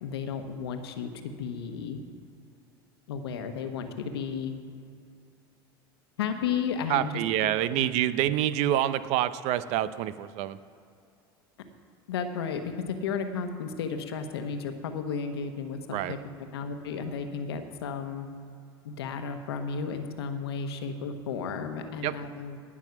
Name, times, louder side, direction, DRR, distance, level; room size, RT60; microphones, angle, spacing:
voice 1, 0.0-2.0 3.1-4.5 6.2-7.1 7.7-7.8 12.1-12.6 12.9-16.2 16.5-18.3 18.8-22.6, left 6 dB, 80° left, 6 dB, 1.2 m, -33 dB
voice 2, 6.9-10.6 15.9-16.1 22.0-22.1, right 12 dB, 60° right, 14 dB, 0.7 m, -27 dB
18.5 x 6.3 x 5.9 m, 2.5 s
hypercardioid pair, 85°, 13 cm